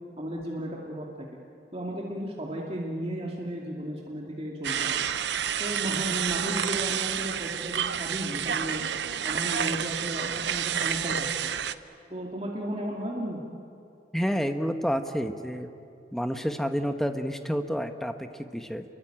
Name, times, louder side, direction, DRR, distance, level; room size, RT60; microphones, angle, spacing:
voice 1, 0.2-1.1 1.7-5.0 5.6-8.8 9.2-11.3 12.1-13.4, equal, 35° right, -3 dB, 2.5 m, -34 dB
sound 1, 4.6-11.7, right 8 dB, 75° right, 0.8 m, -29 dB
voice 2, 14.1-15.7 16.1-18.8, equal, ahead, 7 dB, 1.2 m, -29 dB
28.5 x 23.0 x 8.9 m, 2.5 s
head